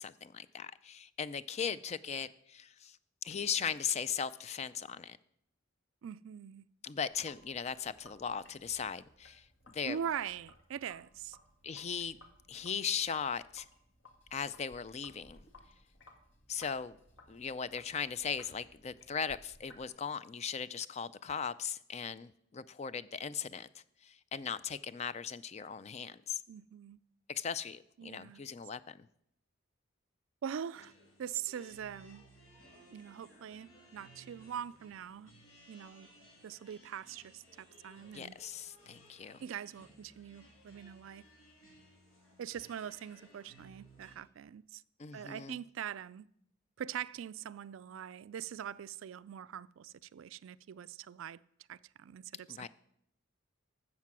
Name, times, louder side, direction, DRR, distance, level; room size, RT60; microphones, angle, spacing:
voice 1, 0.0-3.0 3.2-5.2 6.8-10.0 11.6-12.2 12.5-13.7 14.3-15.4 16.5-17.0 17.3-26.4 27.3-29.1 38.1-39.4 45.0-45.6 52.5-52.7, left 7 dB, 30° left, 0.4 m, -38 dB
voice 2, 6.0-6.7 9.8-11.4 26.5-27.0 28.0-28.4 30.4-30.9 31.2-32.2 32.9-35.3 35.7-36.1 36.4-38.4 39.4-41.3 42.4-44.8 45.1-46.3 46.8-51.4 51.7-52.7, right 9 dB, 70° right, 0.3 m, -43 dB
Sink (filling or washing), 7.0-19.9, left 2 dB, 65° left, 1.8 m, -61 dB
sound 1, 30.7-44.1, equal, 80° left, 6.0 m, -60 dB
13.0 x 7.6 x 6.1 m
head